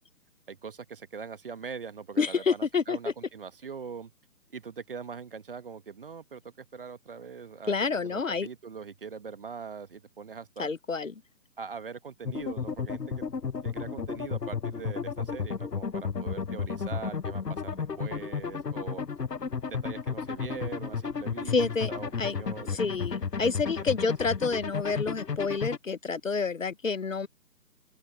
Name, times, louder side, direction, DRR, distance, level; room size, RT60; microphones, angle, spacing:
voice 1, 0.5-4.1 4.5-10.7 11.6-13.3 13.6-19.0 19.7-22.8 23.8-24.1 24.4-24.5, right 5 dB, 35° right, 1.5 m, -42 dB
voice 2, 2.2-3.0 7.7-8.5 10.6-11.1 21.5-21.9 22.2-22.4 22.7-27.3, left 4 dB, 55° left, 1.0 m, -28 dB
sound 1, 12.3-25.8, left 6 dB, 90° left, 0.8 m, -33 dB
open air
figure-of-eight pair, 145°, 47 cm